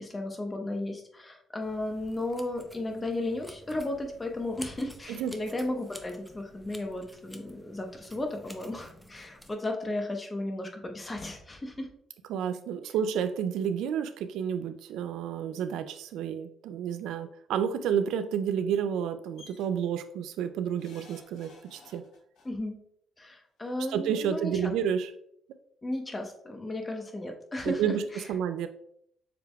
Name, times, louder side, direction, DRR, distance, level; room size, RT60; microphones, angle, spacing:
voice 1, 0.0-11.9 22.4-22.8 23.2-24.7 25.8-27.8, left 1 dB, 20° left, 3 dB, 0.9 m, -34 dB
sound 1, 1.6-9.5, equal, ahead, 0.6 m, -51 dB
voice 2, 12.3-22.0 23.9-25.1 27.6-28.7, right 8 dB, 90° right, 10 dB, 0.3 m, -30 dB
sound 2, 19.4-19.7 20.8-22.5 23.6-23.7 24.0-24.1, left 4 dB, 80° left, 1.8 m, -54 dB
6.7 x 3.3 x 2.3 m, 0.69 s
cardioid pair, 90°, 0 cm